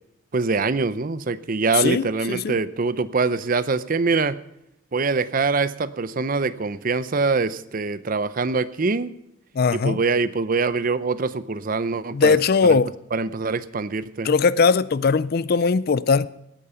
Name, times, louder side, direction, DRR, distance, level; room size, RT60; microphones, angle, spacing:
voice 1, 0.3-4.4 4.9-9.1 9.7-12.4 12.6-12.8 13.1-14.4, right 4 dB, 40° right, 0.6 m, -24 dB
voice 2, 1.8-2.6 9.6-10.0 12.1-12.9 14.2-16.3, left 5 dB, 45° left, 0.4 m, -19 dB
17.5 x 8.7 x 5.6 m
head